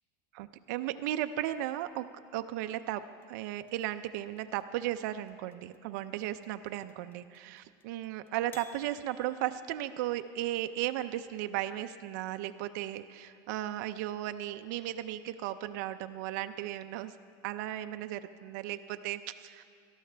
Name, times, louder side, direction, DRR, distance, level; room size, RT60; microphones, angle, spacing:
voice 1, 0.3-2.1 2.3-17.1 17.4-19.6, right 13 dB, 70° right, 9 dB, 0.5 m, -35 dB
sound 1, 3.2-10.2, left 5 dB, 20° left, 0.5 m, -57 dB
18.5 x 13.0 x 3.4 m, 2.2 s
cardioid pair, 170°, 10 cm